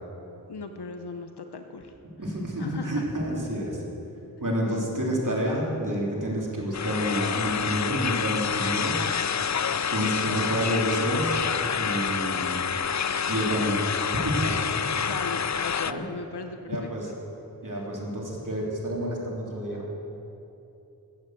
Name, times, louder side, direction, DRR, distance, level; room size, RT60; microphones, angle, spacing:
voice 1, 0.5-1.9 2.6-3.0 15.0-17.1, left 4 dB, 90° left, 6 dB, 0.8 m, -37 dB
voice 2, 2.2-3.8 4.4-9.0 9.9-11.4 11.8-12.6 13.3-14.6 15.8-16.1 16.7-17.0 17.6-19.9, equal, 55° right, -3 dB, 3.3 m, -29 dB
sound 1, 6.7-15.9, left 7 dB, 45° left, 0.4 m, -28 dB
14.0 x 8.9 x 7.7 m, 2.9 s
wide cardioid pair, 50°, 39 cm